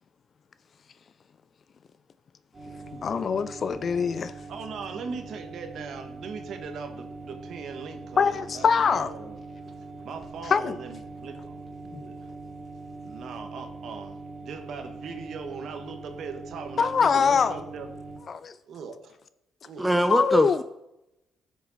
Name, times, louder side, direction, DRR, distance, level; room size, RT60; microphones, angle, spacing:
electric humm from shower, 2.5-18.2, right 3 dB, 30° right, 2.9 m, -42 dB
voice 1, 2.9-4.3 8.2-9.1 10.4-10.8 11.9-12.0 16.8-17.6 18.3-18.5 20.1-20.6, left 6 dB, 45° left, 0.4 m, -23 dB
voice 2, 4.5-9.4 10.0-11.7 12.0-12.3 13.0-14.2 14.4-17.9 18.7-19.1 19.6-19.8, right 5 dB, 65° right, 1.3 m, -39 dB
voice 3, 19.8-20.6, right 1 dB, 5° right, 0.6 m, -23 dB
12.0 x 6.3 x 4.1 m
cardioid pair, 95°, 0 cm